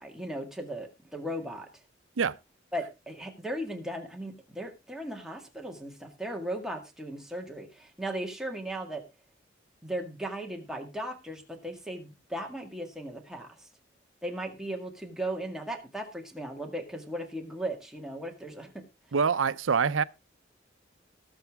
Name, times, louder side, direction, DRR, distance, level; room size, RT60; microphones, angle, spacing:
voice 1, 0.0-1.7 2.7-9.0 9.8-13.7 14.2-18.7, right 1 dB, 5° right, 1.9 m, -37 dB
voice 2, 19.1-20.0, right 6 dB, 80° right, 0.6 m, -25 dB
19.0 x 6.9 x 3.4 m
head